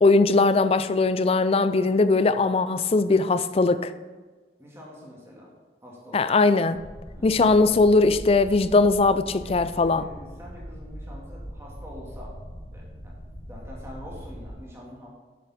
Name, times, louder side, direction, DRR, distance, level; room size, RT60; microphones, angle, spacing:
voice 1, 0.0-3.9 6.1-6.8 7.2-10.1, left 3 dB, 35° left, 0.4 m, -20 dB
voice 2, 4.6-5.5 5.8-6.3 7.1-7.6 9.4-12.3 12.7-13.1 13.5-15.1, equal, 15° right, 2.0 m, -45 dB
sound 1, 6.7-14.5, equal, 50° left, 2.3 m, -41 dB
10.5 x 6.9 x 4.2 m
head